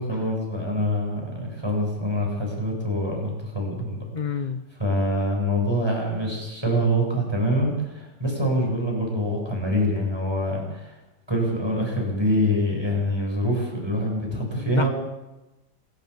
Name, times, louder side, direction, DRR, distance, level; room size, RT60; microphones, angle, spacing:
voice 1, 0.0-4.0 4.8-10.9 11.3-14.9, equal, 15° right, -1 dB, 7.9 m, -25 dB
voice 2, 4.1-4.6 14.5-14.9, left 6 dB, 35° left, 11 dB, 0.8 m, -29 dB
27.0 x 13.0 x 8.6 m, 1.0 s
omnidirectional pair, 1.9 m